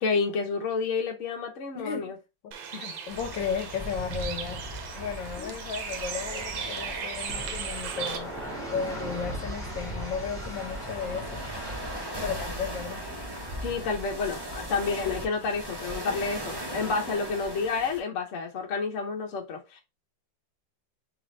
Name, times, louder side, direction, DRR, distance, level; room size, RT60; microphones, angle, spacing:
voice 1, 0.0-2.1 2.7-2.9 5.4-5.6 13.6-19.8, left 4 dB, 55° left, 0.9 m, -30 dB
voice 2, 1.7-2.2 2.4-2.6 2.8-4.6 5.0-8.3 8.7-11.4 12.2-13.0, left 6 dB, 75° left, 1.3 m, -34 dB
Bird, 2.5-8.2, right 7 dB, 75° right, 1.3 m, -37 dB
sound 1, 3.1-18.0, equal, 20° right, 0.6 m, -38 dB
sound 2, 7.3-17.1, right 1 dB, ahead, 1.3 m, -42 dB
3.9 x 3.2 x 3.1 m
omnidirectional pair, 2.1 m